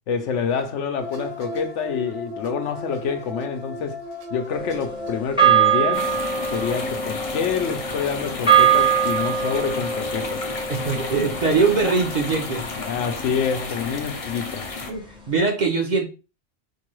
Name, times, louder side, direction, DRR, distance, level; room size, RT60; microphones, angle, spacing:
voice 1, 0.1-4.0 4.3-6.1 6.5-10.4 12.8-14.7, left 6 dB, 80° left, 1.0 m, -27 dB
sound 1, 1.0-5.7 6.1-6.5 6.8-8.7 9.4-9.6 11.4-11.9 12.1-12.2 12.9-13.4 13.8-13.9, left 1 dB, 80° right, 1.2 m, -37 dB
sound 2, 4.5-13.0, right 8 dB, 5° right, 0.5 m, -23 dB
sound 3, 5.9-14.9, left 4 dB, 45° left, 0.5 m, -32 dB
voice 2, 10.7-12.7 14.9-16.1, right 4 dB, 45° right, 0.7 m, -22 dB
4.5 x 2.2 x 3.0 m
omnidirectional pair, 1.2 m